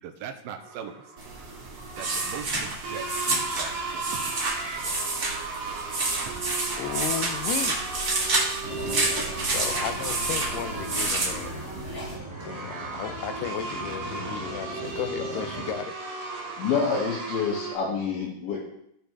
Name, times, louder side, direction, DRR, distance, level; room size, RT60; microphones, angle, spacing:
voice 1, 0.0-0.9 2.0-4.6, right 8 dB, 75° right, 6 dB, 2.5 m, -40 dB
sound 1, 0.6-17.7, right 3 dB, 55° right, 2.8 m, -36 dB
sound 2, 1.2-12.1, right 2 dB, 40° right, 1.4 m, -29 dB
voice 2, 6.7-8.0 9.4-11.7 12.4-16.0, left 9 dB, 85° left, 10 dB, 2.7 m, -34 dB
sound 3, 8.6-15.7, equal, 30° left, 2.1 m, -39 dB
voice 3, 16.6-18.6, left 5 dB, 70° left, -7 dB, 3.9 m, -27 dB
16.5 x 5.7 x 3.4 m, 0.75 s
omnidirectional pair, 4.6 m